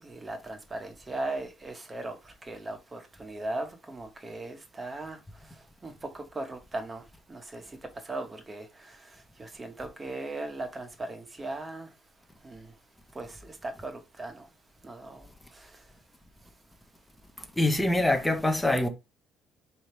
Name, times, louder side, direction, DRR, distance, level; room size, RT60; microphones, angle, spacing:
voice 1, 0.0-7.0 7.3-7.8 8.0-11.9 12.4-12.7 13.1-14.5 14.8-15.8, right 2 dB, 20° right, 1.0 m, -38 dB
voice 2, 17.4-18.9, left 1 dB, 10° left, 0.7 m, -25 dB
3.2 x 2.8 x 4.3 m
cardioid pair, 115°, 0 cm